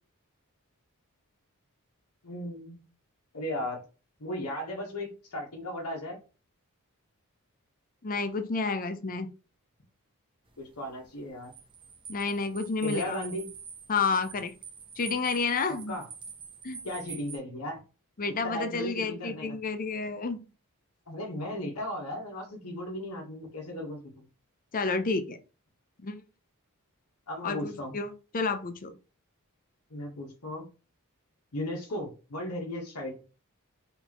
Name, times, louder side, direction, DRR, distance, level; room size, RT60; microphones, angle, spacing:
voice 1, 2.2-2.8 3.3-3.8 4.2-6.2 10.6-11.5 12.8-13.5 15.9-16.1 16.8-17.8 18.4-19.6 21.1-24.3 27.3-28.0 29.9-30.6 31.5-33.2, left 1 dB, 80° left, 0 dB, 1.3 m, -36 dB
voice 2, 8.0-9.3 12.1-13.2 13.9-14.5 15.0-16.0 16.6-16.8 18.2-20.4 24.7-25.4 26.0-26.2 27.4-29.0, left 4 dB, 40° left, 9 dB, 0.6 m, -30 dB
sound 1, 10.5-17.4, right 6 dB, 25° right, 0.7 m, -46 dB
4.1 x 3.8 x 3.0 m, 0.33 s
head